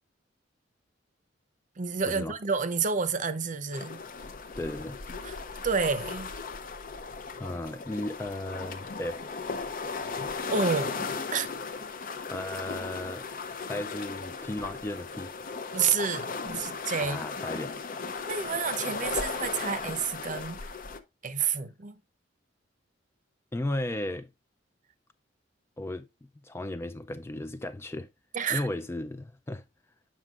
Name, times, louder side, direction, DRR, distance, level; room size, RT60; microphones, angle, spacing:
voice 1, 1.8-4.0 5.2-6.3 10.5-11.5 15.7-17.5 18.3-20.7 21.2-22.0 28.3-28.7, right 5 dB, 40° right, 0.6 m, -30 dB
sound 1, 3.7-21.0, left 4 dB, 45° left, 0.6 m, -36 dB
voice 2, 4.6-5.0 7.4-9.2 12.3-13.3 13.6-15.3 17.0-17.7 23.5-24.3 25.8-26.1 26.4-28.1 28.5-29.6, left 1 dB, 15° left, 0.3 m, -35 dB
7.6 x 5.8 x 2.4 m
head